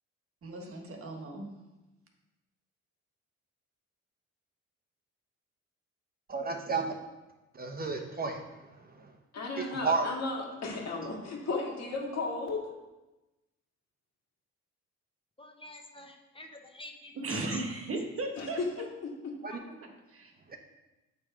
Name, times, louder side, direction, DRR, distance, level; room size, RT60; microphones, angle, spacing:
voice 1, 0.4-1.5 17.1-18.6 19.8-20.3, right 2 dB, 45° right, 2 dB, 1.4 m, -36 dB
voice 2, 6.3-6.9 7.5-8.7 8.9-9.1 9.6-10.1 19.4-19.6, right 4 dB, 30° right, 2 dB, 0.8 m, -32 dB
voice 3, 9.3-12.7 18.4-19.4, left 3 dB, 60° left, -1 dB, 2.0 m, -35 dB
voice 4, 15.4-17.1, left 1 dB, 20° left, 3 dB, 1.0 m, -49 dB
7.9 x 3.4 x 4.9 m, 1.1 s
cardioid pair, 90°, 30 cm